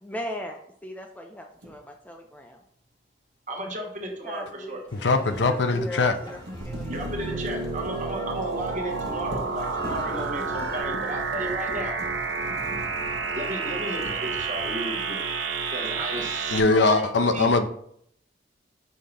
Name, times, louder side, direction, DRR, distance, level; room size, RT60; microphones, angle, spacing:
voice 1, 0.0-2.6 4.1-4.8 5.4-7.7 13.6-13.8 16.0-16.3, equal, 10° left, 2 dB, 0.5 m, -38 dB
sound 1, 1.6-1.8 4.8-13.6 14.0-14.8, equal, 60° right, 1.4 m, -42 dB
voice 2, 3.5-4.8 6.9-12.0 13.3-15.2 15.7-17.6, right 1 dB, 40° right, 2 dB, 1.3 m, -34 dB
sound 2, 4.9-10.8, left 1 dB, 25° left, 1.8 m, -43 dB
voice 3, 5.0-6.1 16.5-17.7, left 3 dB, 65° left, 9 dB, 0.6 m, -21 dB
sound 3, 6.6-16.6, right 4 dB, 80° right, 0.8 m, -30 dB
5.6 x 3.7 x 5.6 m, 0.68 s
head